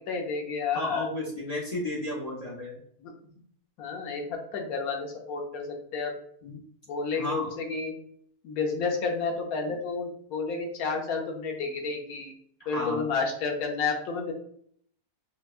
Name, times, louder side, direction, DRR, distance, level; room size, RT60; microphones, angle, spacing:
voice 1, 0.1-1.1 3.0-3.1 3.8-6.1 6.9-7.9 8.4-12.3 12.7-14.3, left 4 dB, 70° left, 2 dB, 1.2 m, -31 dB
voice 2, 0.7-2.8 6.4-6.6 7.1-7.5 9.7-9.8 12.6-13.0, left 1 dB, 40° left, -4 dB, 0.6 m, -33 dB
5.3 x 2.2 x 2.4 m, 0.62 s
omnidirectional pair, 1.6 m